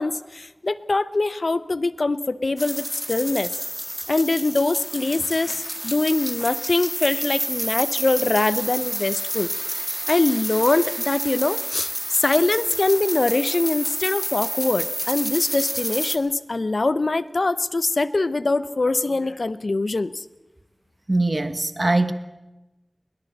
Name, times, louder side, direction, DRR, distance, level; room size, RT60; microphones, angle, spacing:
voice 1, 0.0-3.5 4.1-9.5 10.1-11.9 12.2-20.2, left 3 dB, 75° left, 0.7 m, -23 dB
sound 1, 2.6-16.2, equal, 10° right, 1.6 m, -29 dB
voice 2, 21.1-22.1, right 2 dB, 45° right, 1.2 m, -21 dB
21.5 x 17.5 x 7.8 m
wide cardioid pair, 60°, 0 cm